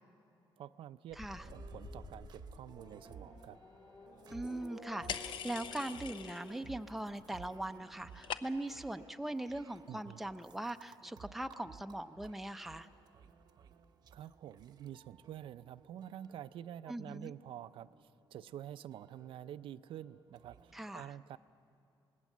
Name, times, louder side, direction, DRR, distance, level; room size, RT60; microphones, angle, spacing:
voice 1, 0.6-1.2 1.5-3.6 9.9-10.2 14.1-21.4, right 11 dB, 75° right, 13 dB, 0.5 m, -48 dB
Race car auto racing / Accelerating revving vroom, 1.1-6.4, left 3 dB, 50° left, 5.9 m, -53 dB
sound 1, 1.3-20.8, right 6 dB, 50° right, 0.8 m, -57 dB
voice 2, 4.3-12.9 16.9-17.3 20.7-21.1, right 1 dB, 5° right, 8 dB, 0.5 m, -41 dB
sound 2, 5.1-6.7 7.0-7.5 7.8-8.8, left 8 dB, 65° left, 0.7 m, -43 dB
25.5 x 19.5 x 7.3 m, 2.7 s
cardioid pair, 160°, 9 cm